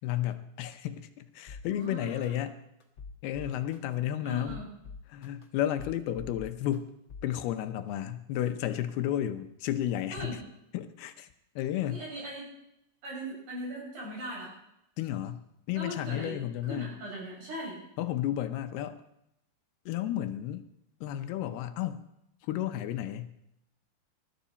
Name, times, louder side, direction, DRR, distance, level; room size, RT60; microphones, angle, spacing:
voice 1, 0.0-2.6 3.2-4.6 5.1-6.9 7.2-10.4 10.7-11.3 11.6-12.0 15.0-17.0 18.0-19.0 19.9-20.7 21.0-22.0 22.4-23.3, left 12 dB, 85° left, 10 dB, 2.8 m, -32 dB
sound 1, 1.5-1.6 2.2-2.3 2.8-3.8 4.3-5.4 5.8-6.8 7.1-7.3, left 4 dB, 55° left, 1.3 m, -44 dB
voice 2, 1.6-2.3 4.2-4.7 10.1-10.4 11.8-12.5 13.0-14.5 15.7-16.4 16.7-17.8, right 1 dB, 50° right, -3 dB, 7.7 m, -39 dB
20.5 x 12.5 x 4.2 m, 0.82 s
omnidirectional pair, 4.5 m